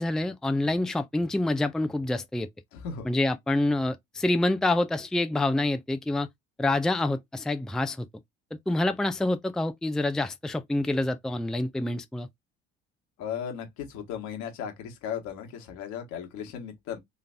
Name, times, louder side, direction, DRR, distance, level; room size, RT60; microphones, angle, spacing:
voice 1, 0.0-2.5 3.0-6.3 6.6-8.1 8.7-12.3, left 2 dB, ahead, 0.5 m, -27 dB
voice 2, 2.7-3.1 13.2-17.0, left 8 dB, 70° left, 1.6 m, -36 dB
3.9 x 3.3 x 2.6 m
hypercardioid pair, 60°, 30 cm